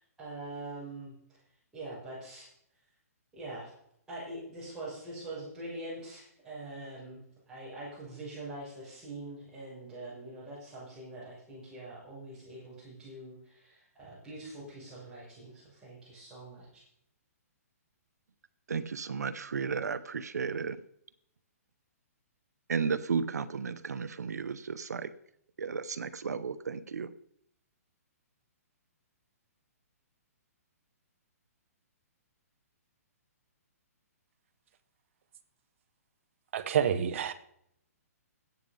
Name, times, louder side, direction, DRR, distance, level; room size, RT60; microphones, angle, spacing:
voice 1, 0.0-1.4 1.7-2.5 3.3-3.7 4.1-7.2 7.5-16.8, right 2 dB, 10° right, -10 dB, 6.8 m, -44 dB
voice 2, 18.7-20.8 22.7-25.1 25.6-27.1, right 5 dB, 90° right, 14 dB, 0.9 m, -33 dB
voice 3, 36.5-37.3, right 8 dB, 50° right, 10 dB, 1.4 m, -28 dB
13.5 x 9.5 x 5.4 m, 0.71 s
hypercardioid pair, 150°, 9 cm